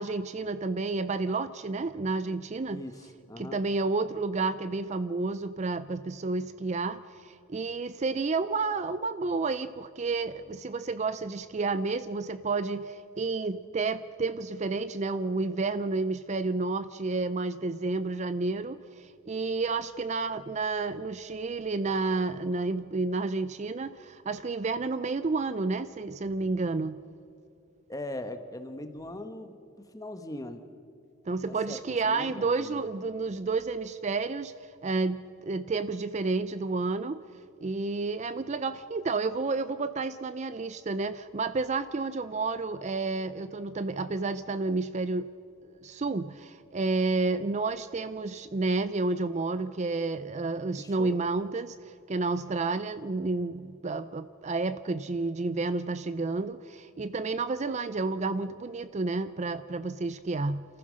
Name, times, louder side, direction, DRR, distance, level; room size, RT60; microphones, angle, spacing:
voice 1, 0.0-2.8 3.4-27.0 31.3-34.5 34.8-37.2 37.6-45.3 45.8-60.7, right 3 dB, 35° right, 13 dB, 0.4 m, -30 dB
voice 2, 2.7-3.6 27.9-30.6 31.5-32.8 50.8-51.2, left 1 dB, 15° left, 8 dB, 1.1 m, -40 dB
27.5 x 15.0 x 6.4 m, 2.5 s
head